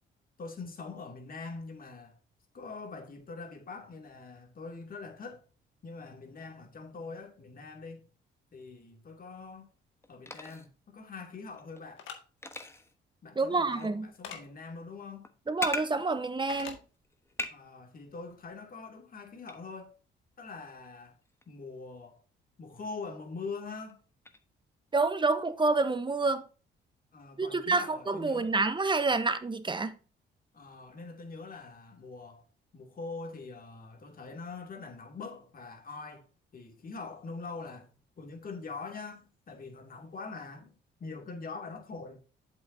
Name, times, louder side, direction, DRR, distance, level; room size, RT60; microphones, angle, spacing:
voice 1, 0.4-2.2 2.5-5.5 5.8-8.1 8.5-9.7 10.1-12.1 13.2-15.3 17.5-19.9 20.4-21.2 21.5-22.2 22.6-24.0 27.1-28.5 30.5-32.4 32.7-36.3 36.5-40.7 41.0-42.2, left 4 dB, 45° left, 2.5 m, -43 dB
sound 1, 9.4-10.7 11.4-11.8 12.4-12.9 13.7-15.9 16.2-17.5 17.8-18.5 19.5-19.6 21.2-21.5 23.9-24.0 24.2-24.4 27.7-27.9, left 1 dB, 15° left, 1.2 m, -40 dB
sound 2, 12.0-12.2 14.2-14.4 16.5-16.8, left 8 dB, 85° left, 1.7 m, -42 dB
voice 2, 13.4-14.1 15.5-16.8 24.9-26.4 27.4-29.9, right 3 dB, 25° right, 1.0 m, -28 dB
7.8 x 7.8 x 2.7 m
cardioid pair, 90°, 20 cm